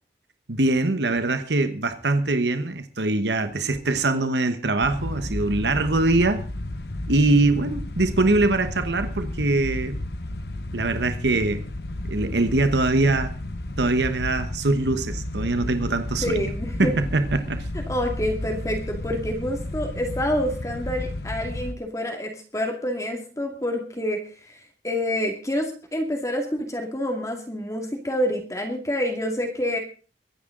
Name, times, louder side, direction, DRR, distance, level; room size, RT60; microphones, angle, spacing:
voice 1, 0.5-6.4 7.1-10.0 10.7-11.6 12.1-13.3 13.8-16.5 16.8-17.6, right 2 dB, 80° right, 9 dB, 1.2 m, -23 dB
sound 1, 4.8-21.7, left 1 dB, 70° left, 1.1 m, -32 dB
voice 2, 16.2-16.9 17.9-29.8, left 1 dB, 20° left, 2 dB, 2.2 m, -27 dB
23.5 x 10.0 x 3.8 m, 0.37 s
head